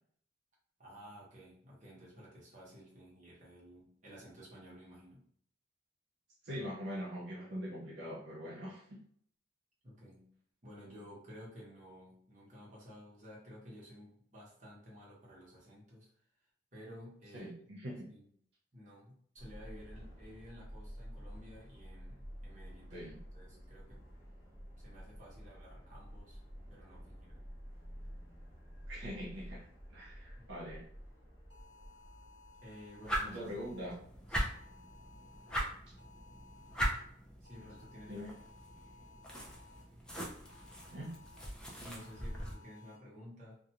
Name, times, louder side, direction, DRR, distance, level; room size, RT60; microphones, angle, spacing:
voice 1, 0.8-5.2 9.8-10.3 10.6-16.1 16.7-17.7 18.1-18.3 18.7-24.0 24.8-26.4 26.7-27.4 30.4-30.5 32.6-33.5 33.8-33.9 34.3-34.5 37.4-38.3 41.7-43.6, equal, 40° right, -5 dB, 1.0 m, -53 dB
voice 2, 6.4-8.9 17.3-18.0 22.9-23.2 28.9-29.6 29.9-30.9 33.3-34.0 38.1-38.3 40.9-41.1, equal, 65° right, -5 dB, 0.5 m, -43 dB
Subway metro underground, 19.4-35.5, equal, 15° right, 0.8 m, -51 dB
sound 1, 31.5-33.9 34.5-35.5 36.0-37.0 37.4-39.8 40.4-41.5 41.9-43.0, left 3 dB, 70° left, 0.7 m, -60 dB
sound 2, 33.0-42.5, right 1 dB, 5° left, 0.4 m, -41 dB
2.5 x 2.2 x 2.8 m, 0.62 s
head